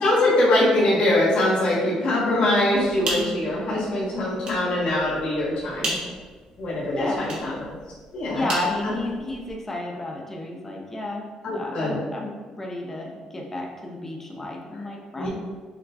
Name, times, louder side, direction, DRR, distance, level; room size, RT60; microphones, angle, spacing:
voice 1, 0.0-6.0 6.6-7.6 8.1-8.5 8.8-8.9 11.4-12.0 15.2-15.3, left 1 dB, 65° left, -8 dB, 1.2 m, -22 dB
sound 1, 2.7-9.6, right 1 dB, 50° right, 1.1 m, -36 dB
voice 2, 7.0-7.5 8.3-15.3, left 2 dB, 15° left, 0 dB, 0.6 m, -32 dB
5.9 x 2.2 x 2.7 m, 1.4 s
cardioid pair, 135°, 2 cm